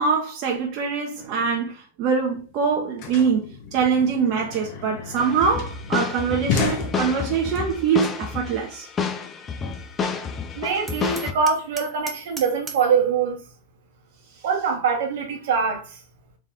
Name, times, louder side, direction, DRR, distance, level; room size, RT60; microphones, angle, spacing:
voice 1, 0.0-8.9, right 6 dB, 45° right, 1.0 m, -23 dB
sound 1, 2.1-2.2 2.4-7.6, left 6 dB, 55° left, 1.1 m, -32 dB
sound 2, 5.2-11.3, left 5 dB, 25° left, 0.6 m, -29 dB
voice 2, 10.6-13.4 14.4-16.0, right 5 dB, 70° right, 1.3 m, -23 dB
Hammer, 10.9-13.0, right 6 dB, 20° right, 0.7 m, -38 dB
3.7 x 3.1 x 3.8 m
hypercardioid pair, 115°, 0 cm